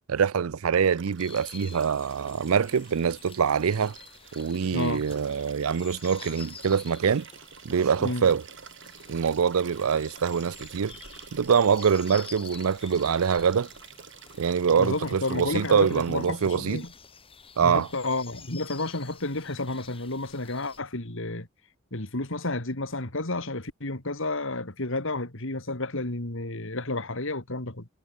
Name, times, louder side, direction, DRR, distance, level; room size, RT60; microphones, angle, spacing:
voice 1, 0.1-4.0 4.4-7.3 7.6-8.4 9.1-10.9 11.3-13.7 14.4-16.8 17.6-17.9, right 6 dB, 90° right, 0.5 m, -24 dB
Liquid, 0.8-16.9 18.2-18.3, right 7 dB, 60° right, 4.4 m, -49 dB
sound 1, 1.2-20.8, left 6 dB, 25° left, 4.1 m, -49 dB
voice 2, 4.7-5.0 8.0-8.3 14.8-16.9 17.6-21.5 21.9-27.9, left 2 dB, 65° left, 3.1 m, -31 dB
head